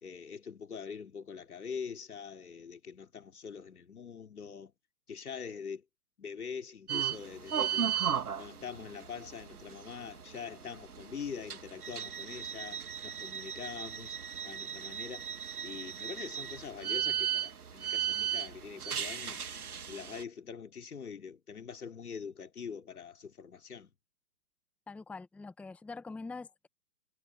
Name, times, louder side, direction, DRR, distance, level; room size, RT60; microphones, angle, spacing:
voice 1, 0.0-4.7 5.1-5.8 6.2-7.9 8.4-14.2 14.4-15.3 15.6-19.4 19.9-23.9, left 6 dB, 65° left, 3.1 m, -44 dB
sound 1, 6.9-20.2, right 9 dB, 65° right, 2.0 m, -36 dB
voice 2, 24.9-26.7, left 3 dB, 5° left, 1.3 m, -44 dB
figure-of-eight pair, 130°, 48 cm